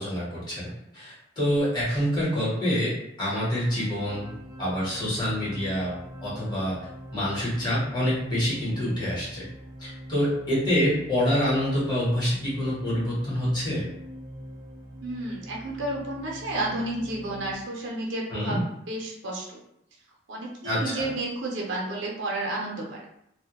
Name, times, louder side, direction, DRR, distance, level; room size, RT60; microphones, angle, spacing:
voice 1, 0.0-2.9 3.2-4.3 4.6-5.9 6.2-6.7 7.1-9.4 9.8-13.8 18.3-18.6 20.6-21.1, equal, 20° left, -8 dB, 1.0 m, -26 dB
sound 1, 3.2-17.5, equal, 20° right, 0.3 m, -43 dB
voice 2, 15.0-18.6 18.9-19.6 20.3-23.0, right 2 dB, 80° right, -2 dB, 0.6 m, -31 dB
2.1 x 2.1 x 2.8 m, 0.77 s
head